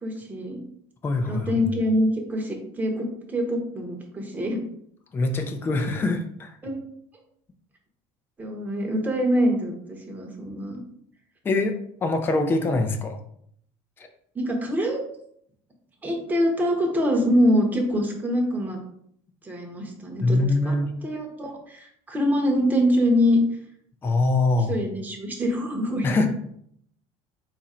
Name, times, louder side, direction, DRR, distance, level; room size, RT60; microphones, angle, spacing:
voice 1, 0.0-0.6 1.3-4.6 6.6-6.8 8.4-10.8 14.3-15.0 16.0-18.8 19.4-20.8 21.0-23.4 24.7-26.1, equal, 15° right, 1 dB, 0.9 m, -24 dB
voice 2, 1.0-1.5 5.1-6.6 11.4-13.2 20.2-20.9 24.0-24.7 26.0-26.3, left 2 dB, 20° left, 4 dB, 0.4 m, -23 dB
4.0 x 2.5 x 4.2 m, 0.68 s
cardioid pair, 145°, 12 cm